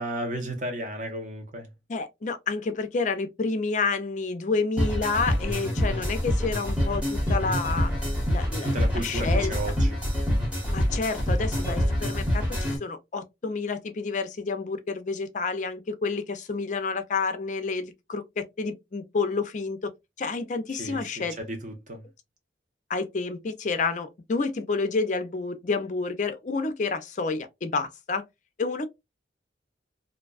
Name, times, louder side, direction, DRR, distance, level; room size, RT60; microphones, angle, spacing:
voice 1, 0.0-1.7 8.6-10.0 20.8-22.0, right 1 dB, 45° right, 0.9 m, -34 dB
voice 2, 1.9-7.9 8.3-9.5 10.7-19.9 20.2-21.4 22.9-28.2 28.6-28.9, left 4 dB, 40° left, 0.4 m, -29 dB
sound 1, 4.8-12.8, equal, 10° right, 0.9 m, -26 dB
2.5 x 2.2 x 2.3 m
head